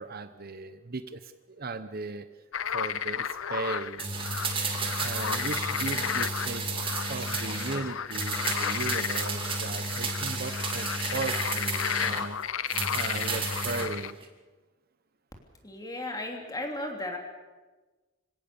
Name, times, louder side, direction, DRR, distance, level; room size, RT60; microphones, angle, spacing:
voice 1, 0.0-2.3 2.7-4.1 5.0-6.7 7.1-12.4 12.9-14.2, right 3 dB, 50° right, 11 dB, 1.0 m, -37 dB
sound 1, 2.5-14.1, left 8 dB, 85° left, 0.7 m, -33 dB
sound 2, 4.0-7.8 8.1-12.3 12.7-13.9 14.2-14.3, right 3 dB, 25° right, 2.6 m, -32 dB
voice 2, 15.6-17.2, left 1 dB, 20° left, 2 dB, 3.2 m, -35 dB
26.0 x 17.0 x 7.0 m, 1.3 s
head